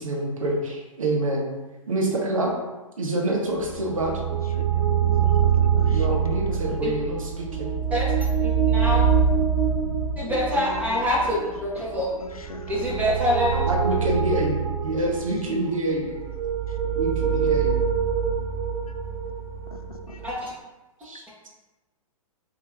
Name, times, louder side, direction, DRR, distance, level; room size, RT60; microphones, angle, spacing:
voice 1, 0.0-1.5 1.9-2.5 3.0-4.2 4.8-4.9 5.8-7.7 13.6-16.2 16.9-17.8 21.0-21.2, right 1 dB, 70° right, 0 dB, 1.0 m, -27 dB
sound 1, 3.6-20.3, right 7 dB, 35° right, 0.8 m, -25 dB
voice 2, 4.7-6.0 6.5-6.8 10.3-10.4 10.7-11.0 12.5-13.0 20.1-20.2, left 3 dB, 90° left, 5 dB, 0.5 m, -39 dB
voice 3, 8.4-9.1 10.2-12.1 12.7-13.6 20.2-20.5, left 1 dB, 10° right, -7 dB, 1.2 m, -25 dB
5.4 x 2.8 x 2.5 m, 1.1 s
figure-of-eight pair, 115°, 18 cm